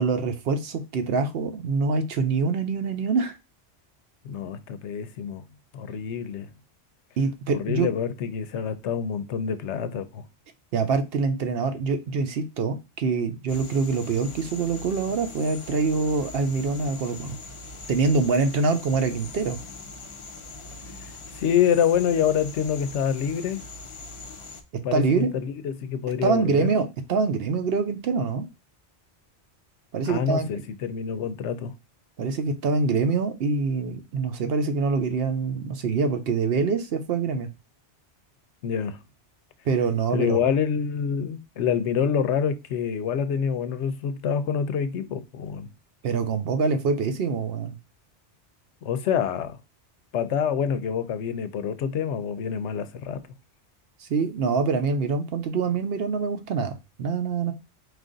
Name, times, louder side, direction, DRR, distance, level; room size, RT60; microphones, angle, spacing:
voice 1, 0.0-3.4 7.2-7.9 10.7-17.4 17.9-19.6 24.9-25.3 26.2-28.5 29.9-30.5 32.2-37.5 39.7-40.4 46.0-47.8 54.0-57.5, right 4 dB, 65° right, 0.8 m, -25 dB
voice 2, 4.2-5.4 5.7-6.5 7.5-10.3 21.0-23.6 24.8-26.7 30.1-31.7 38.6-39.0 40.1-45.7 48.8-49.6 50.1-53.2, left 8 dB, 80° left, 0.9 m, -26 dB
sound 1, 13.5-24.6, left 3 dB, 45° left, 0.4 m, -41 dB
4.8 x 2.4 x 3.7 m
omnidirectional pair, 1.2 m